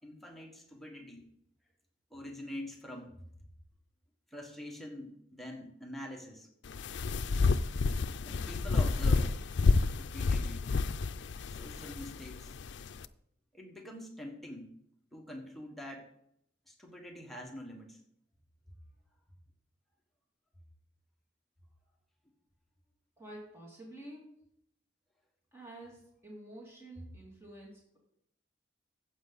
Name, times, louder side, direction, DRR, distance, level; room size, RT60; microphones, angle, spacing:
voice 1, 0.0-1.3 2.1-3.3 4.3-6.5 8.2-9.4 9.7-10.7 11.4-12.5 13.5-14.7 15.1-16.1 16.7-18.0, left 1 dB, ahead, 0 dB, 1.5 m, -45 dB
sound 1, 6.6-13.1, left 4 dB, 70° left, 0.5 m, -30 dB
voice 2, 23.2-24.3 25.5-28.0, right 1 dB, 15° right, -4 dB, 2.7 m, -49 dB
14.0 x 8.0 x 4.1 m, 0.74 s
head